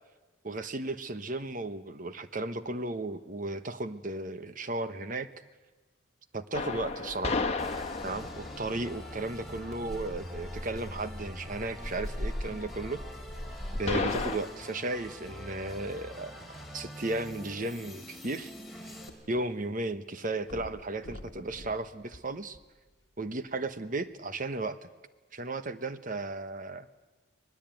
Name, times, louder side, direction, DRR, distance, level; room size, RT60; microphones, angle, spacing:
voice 1, 0.4-5.3 6.3-7.4 8.0-13.0 13.7-16.3 16.7-18.5 18.8-18.9 19.3-22.6 23.2-24.9 25.3-26.9, right 2 dB, 40° right, 11 dB, 1.1 m, -35 dB
sound 1, 6.5-14.4, left 3 dB, 30° left, 1.4 m, -35 dB
sound 2, 7.6-19.1, left 1 dB, ahead, 3.0 m, -45 dB
sound 3, 18.2-19.6 19.9-20.0 20.4-23.0 23.7-23.8, left 1 dB, 60° left, 1.4 m, -48 dB
25.0 x 19.5 x 9.1 m, 1.3 s
head